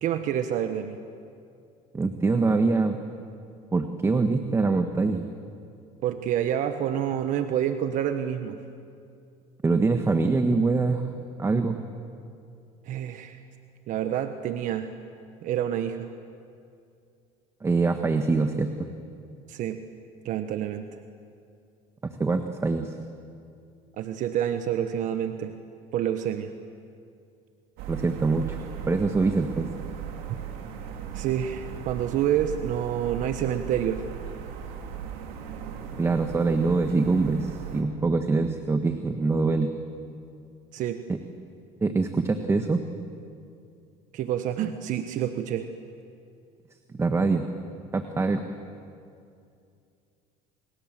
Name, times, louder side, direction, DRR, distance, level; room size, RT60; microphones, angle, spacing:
voice 1, 0.0-1.0 6.0-8.6 12.9-13.4 13.9-14.9 15.4-16.1 19.5-19.8 20.2-20.8 24.0-25.6 25.9-26.5 31.1-34.0 40.7-41.0 44.1-45.7, right 10 dB, 60° right, 8 dB, 1.4 m, -28 dB
voice 2, 1.9-3.0 3.7-5.2 9.6-11.0 11.4-11.8 17.6-18.9 22.0-23.0 27.9-28.6 28.9-29.7 36.0-39.7 41.1-41.2 41.8-42.8 47.0-47.5 47.9-48.4, right 3 dB, 15° right, 7 dB, 1.5 m, -24 dB
sound 1, 27.8-37.8, right 8 dB, 80° right, 3.3 m, -38 dB
28.5 x 26.5 x 7.6 m, 2.5 s
cardioid pair, 115°, 15 cm